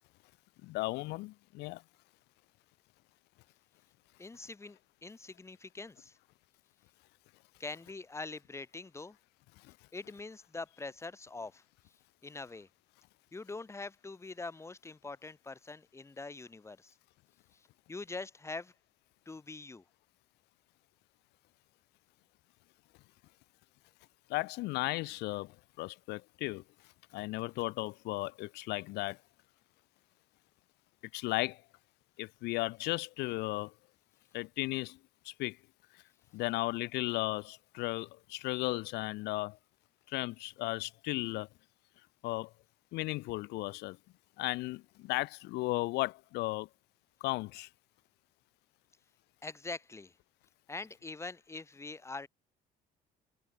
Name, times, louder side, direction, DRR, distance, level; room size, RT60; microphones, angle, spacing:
voice 1, 0.6-1.8 24.3-25.5 25.8-26.6 27.1-29.2 31.1-31.6 32.2-33.7 34.3-35.0 35.3-35.6 36.3-39.6 40.1-41.5 42.2-42.5 42.9-44.0 44.4-46.7 47.2-47.7, left 21 dB, 85° left, 0.5 m, -35 dB
voice 2, 4.2-6.2 7.6-9.2 9.9-11.9 12.2-12.7 13.3-17.0 17.5-18.7 19.3-19.8 49.4-50.2 50.7-52.3, left 3 dB, 15° left, 0.9 m, -44 dB
cardioid pair, 110°, 17 cm